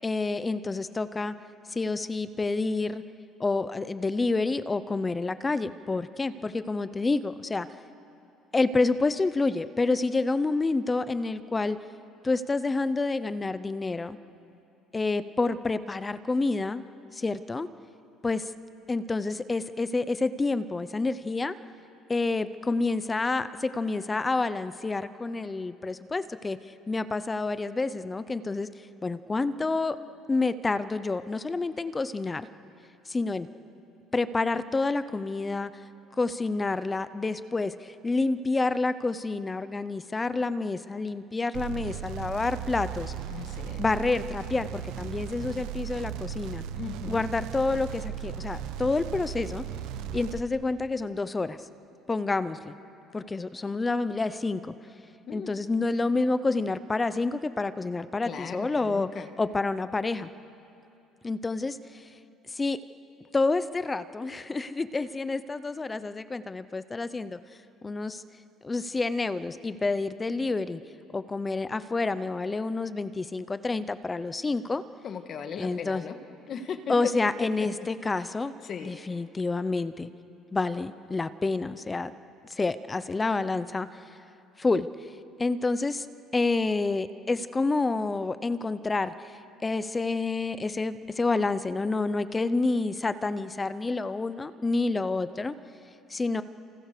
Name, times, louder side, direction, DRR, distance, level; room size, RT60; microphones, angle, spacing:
voice 1, 0.0-1.3 1.7-3.0 3.4-7.7 8.5-11.8 12.2-14.2 14.9-16.8 17.1-17.7 18.2-18.5 18.9-21.6 22.1-26.6 26.9-28.7 29.0-30.0 30.3-32.5 33.1-33.5 34.1-35.7 36.2-43.1 43.8-46.6 47.1-49.6 50.1-51.6 52.1-52.7 53.1-54.7 55.3-59.1 59.4-60.3 61.2-62.1 62.5-62.8 63.3-67.4 67.8-68.2 68.6-70.8 71.1-74.8 75.6-76.0 76.9-78.5 78.8-80.1 80.5-82.1 82.5-83.9 84.6-84.9 85.4-86.1 86.3-95.5 96.1-96.4, left 3 dB, 15° left, 13 dB, 0.6 m, -28 dB
sound 1, 41.5-50.4, right 9 dB, 85° right, 1.2 m, -36 dB
voice 2, 43.3-43.8 46.7-47.2 55.3-55.9 58.2-59.3 75.0-76.1 76.5-76.9 77.6-77.7 78.6-78.9, left 7 dB, 35° left, 7 dB, 1.6 m, -38 dB
29.5 x 27.5 x 6.7 m, 2.8 s
cardioid pair, 165°, 0 cm